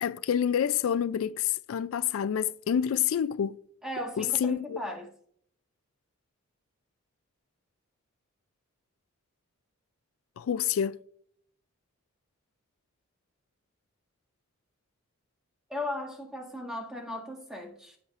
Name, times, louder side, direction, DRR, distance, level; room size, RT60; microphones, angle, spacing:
voice 1, 0.0-3.6 4.2-4.8 10.4-11.0, left 9 dB, 70° left, 0.3 m, -28 dB
voice 2, 3.8-5.1 15.7-18.0, left 1 dB, ahead, 1.5 m, -37 dB
15.5 x 5.7 x 2.5 m
head